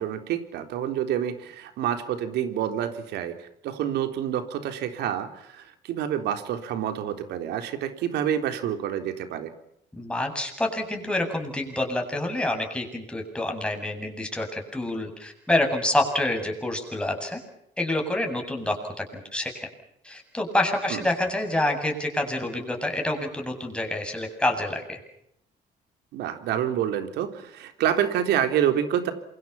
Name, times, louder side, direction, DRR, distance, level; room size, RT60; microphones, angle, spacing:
voice 1, 0.0-9.5 20.9-21.0 26.1-29.1, right 10 dB, 80° right, 8 dB, 3.8 m, -28 dB
voice 2, 9.9-17.4 17.8-19.7 20.0-25.0, left 1 dB, 5° left, 2 dB, 7.9 m, -27 dB
28.0 x 24.5 x 5.9 m, 0.76 s
cardioid pair, 110°, 17 cm